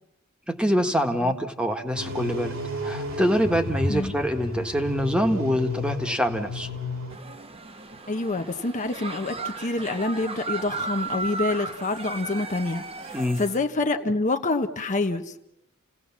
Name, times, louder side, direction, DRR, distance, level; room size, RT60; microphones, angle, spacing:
voice 1, 0.5-2.6 2.8-6.7 13.1-13.4, equal, 5° right, 6 dB, 1.6 m, -25 dB
sound 1, 1.9-7.2, left 1 dB, 65° right, 4.4 m, -32 dB
sound 2, 7.1-13.6, right 4 dB, 25° right, 1.2 m, -35 dB
voice 2, 8.1-15.3, left 2 dB, 35° left, 6 dB, 0.9 m, -27 dB
29.5 x 17.5 x 7.3 m, 0.84 s
head